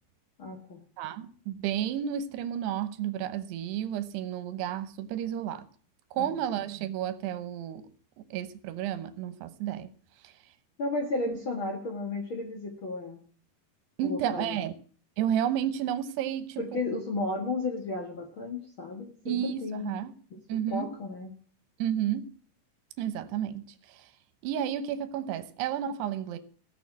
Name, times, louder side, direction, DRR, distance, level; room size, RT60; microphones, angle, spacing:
voice 1, 0.4-0.8 6.1-6.3 10.8-13.2 14.0-14.7 16.6-19.9 20.5-21.3, left 3 dB, 50° left, 1.6 m, -33 dB
voice 2, 1.0-5.6 6.1-7.9 8.2-9.9 10.2-10.3 14.0-14.7 15.2-16.8 19.3-20.1 20.5-20.9 21.8-22.3 23.0-24.1 24.4-26.4, right 10 dB, 85° right, 3.1 m, -32 dB
17.0 x 6.8 x 7.3 m
omnidirectional pair, 4.7 m